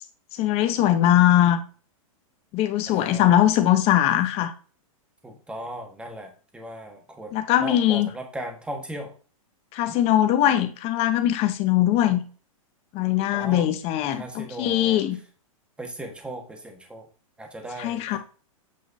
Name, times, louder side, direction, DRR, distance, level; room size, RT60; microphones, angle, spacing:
voice 1, 0.3-1.6 2.5-4.5 7.3-8.1 9.7-12.2 12.9-15.2 17.8-18.2, left 12 dB, 35° left, 1.0 m, -21 dB
voice 2, 2.9-3.7 5.2-9.1 9.9-10.0 13.3-13.8 14.1-15.0 15.8-17.1 17.4-18.2, right 1 dB, 5° right, 1.6 m, -37 dB
8.5 x 6.0 x 2.8 m
hypercardioid pair, 130°, 18 cm